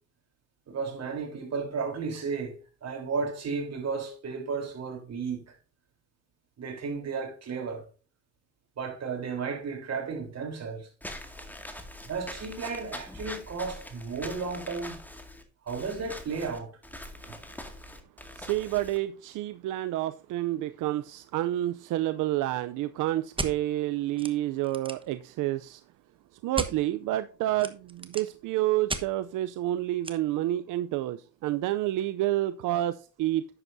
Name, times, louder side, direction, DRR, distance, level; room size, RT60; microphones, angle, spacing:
voice 1, 0.7-5.4 6.6-7.8 8.8-10.9 12.1-15.0 15.6-16.7 17.3-17.4, right 5 dB, 60° right, 3.6 m, -33 dB
Walk footsteps / Squeak, 11.0-19.0, left 1 dB, 5° left, 2.0 m, -43 dB
voice 2, 18.3-25.8 26.4-33.5, right 14 dB, 85° right, 0.5 m, -29 dB
sound 1, 23.4-23.5 24.2-24.3 24.6-25.1 26.5-26.7 27.6-28.3 28.9-29.0 30.0-30.1, right 3 dB, 15° right, 1.1 m, -33 dB
11.0 x 7.9 x 2.6 m
cardioid pair, 90°, 30 cm